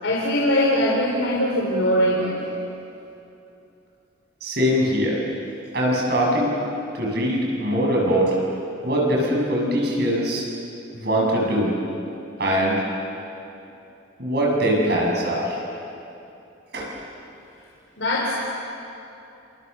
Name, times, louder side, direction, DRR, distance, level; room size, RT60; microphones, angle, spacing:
voice 1, 0.0-2.4 18.0-18.3, equal, 80° left, -3 dB, 3.9 m, -21 dB
voice 2, 4.4-5.2 5.7-6.6 6.9-8.4 8.8-10.5 11.0-11.7 12.4-12.8 14.2-15.6 16.7-16.9, equal, 55° right, -2 dB, 7.4 m, -22 dB
29.5 x 27.0 x 6.9 m, 2.8 s
head